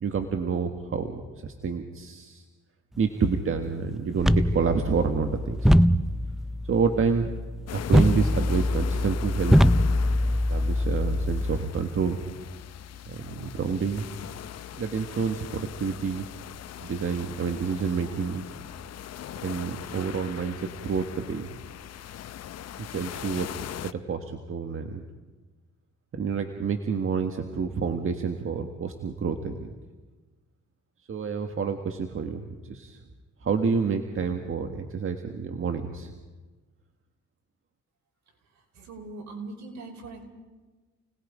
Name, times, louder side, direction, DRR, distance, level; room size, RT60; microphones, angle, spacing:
voice 1, 0.0-2.4 3.0-5.7 6.7-7.3 7.7-9.8 10.3-12.2 13.0-14.1 14.8-16.3 16.8-18.4 19.4-21.5 22.8-23.5 23.8-25.0 26.1-29.7 31.1-33.0 33.4-36.1, right 5 dB, 45° right, 5 dB, 1.6 m, -28 dB
sound 1, 4.2-11.6, equal, ahead, 0.6 m, -23 dB
sound 2, 7.7-23.9, left 11 dB, 55° left, 0.7 m, -41 dB
voice 2, 38.7-40.2, right 3 dB, 65° right, 2 dB, 5.2 m, -40 dB
29.5 x 19.5 x 5.1 m, 1.3 s
cardioid pair, 90°, 30 cm